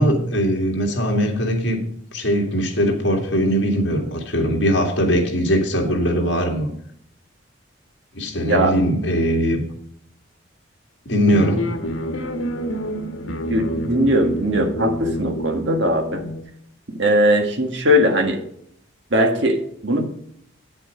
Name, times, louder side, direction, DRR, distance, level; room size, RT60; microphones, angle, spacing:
voice 1, 0.0-1.8 2.1-6.7 8.1-9.6 11.1-11.7, equal, 60° left, 2 dB, 2.3 m, -20 dB
sound 1, 11.2-16.4, equal, 85° left, 1.4 m, -28 dB
voice 2, 13.5-16.2 16.9-18.4 19.1-20.1, equal, 65° right, 2 dB, 1.6 m, -19 dB
8.9 x 7.7 x 5.0 m, 0.70 s
head